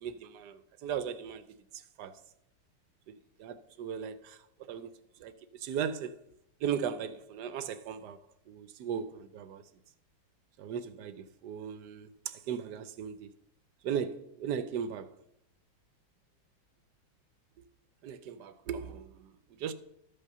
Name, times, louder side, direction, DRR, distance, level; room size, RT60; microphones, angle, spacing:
voice 1, 0.0-1.4 2.0-2.2 3.4-4.4 4.7-4.9 5.2-5.3 5.6-6.1 6.6-8.2 8.5-9.6 10.6-13.3 13.8-15.1 18.0-19.1 19.6-19.7, right 8 dB, 70° right, 1.0 m, -37 dB
13.0 x 5.5 x 6.6 m
omnidirectional pair, 2.2 m